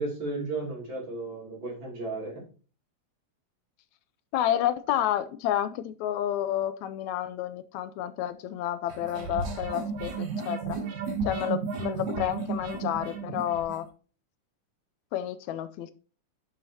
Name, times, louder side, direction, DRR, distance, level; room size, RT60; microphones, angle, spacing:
voice 1, 0.0-2.4, right 3 dB, 40° right, -1 dB, 3.4 m, -34 dB
voice 2, 4.3-10.8 11.2-13.9 15.1-15.9, left 11 dB, 85° left, 12 dB, 2.0 m, -30 dB
sound 1, 8.9-13.8, right 5 dB, 80° right, 3.6 m, -33 dB
10.5 x 7.1 x 2.8 m, 0.37 s
omnidirectional pair, 3.3 m